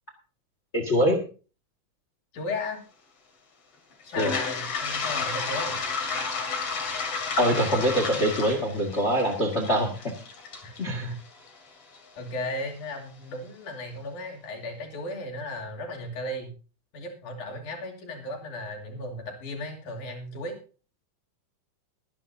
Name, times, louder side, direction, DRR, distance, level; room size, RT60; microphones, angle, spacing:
voice 1, 0.7-1.2 4.2-4.3 7.4-9.9 10.8-11.0, equal, 25° left, 4 dB, 1.5 m, -24 dB
voice 2, 2.3-2.8 4.1-5.8 10.6-11.2 12.1-16.5 16.9-20.6, left 1 dB, 75° left, 1 dB, 4.3 m, -35 dB
Toilet flush, 4.0-12.0, left 4 dB, 50° left, 3.4 m, -32 dB
22.0 x 10.0 x 2.7 m, 0.36 s
omnidirectional pair, 3.6 m